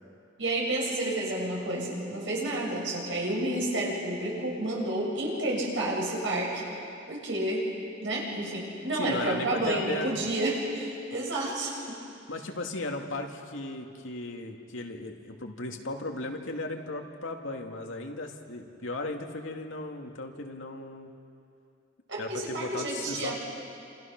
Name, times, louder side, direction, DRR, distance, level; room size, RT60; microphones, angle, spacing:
voice 1, 0.4-6.6 7.1-7.7 8.0-12.0 22.1-23.4, right 1 dB, 70° right, -3 dB, 7.4 m, -30 dB
voice 2, 8.9-10.1 12.3-21.1 22.2-23.3, left 2 dB, 90° left, 2 dB, 2.3 m, -36 dB
28.5 x 28.0 x 6.1 m, 2.5 s
head